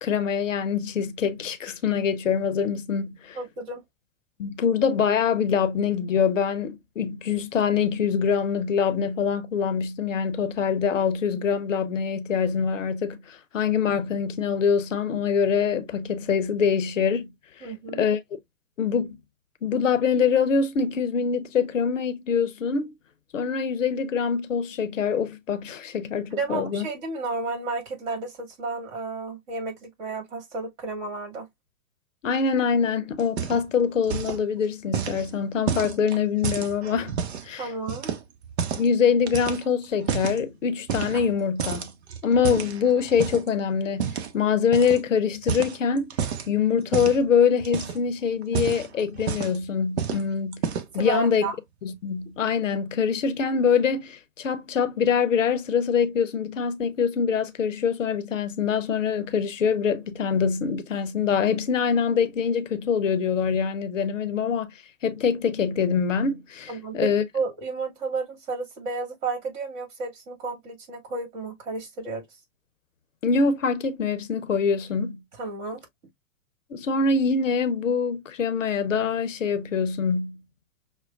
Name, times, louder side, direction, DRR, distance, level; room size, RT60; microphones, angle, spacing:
voice 1, 0.0-3.4 4.4-17.3 17.6-18.2 18.8-19.2 19.6-22.9 23.3-26.8 32.2-37.1 37.4-37.7 38.8-41.9 42.2-46.1 46.5-50.7 50.9-51.5 51.8-64.7 65.0-67.2 73.2-75.2 76.7-80.4, left 6 dB, 65° left, 0.7 m, -24 dB
voice 2, 3.3-3.8 17.6-18.0 26.3-31.5 37.6-38.1 50.9-51.6 66.7-72.2 75.4-75.8, right 3 dB, 35° right, 2.1 m, -32 dB
sound 1, 33.2-33.8 34.0-34.4 34.9-37.5 37.9-38.9 39.3-40.4 40.9-41.3 41.6-43.5 44.0-44.3 44.7-45.0 45.3-46.5 46.9-47.2 47.6-48.1 48.4-49.6 50.0-50.2 50.5-51.0, right 7 dB, 50° right, 0.8 m, -30 dB
6.1 x 2.2 x 2.3 m
figure-of-eight pair, 110°, 41 cm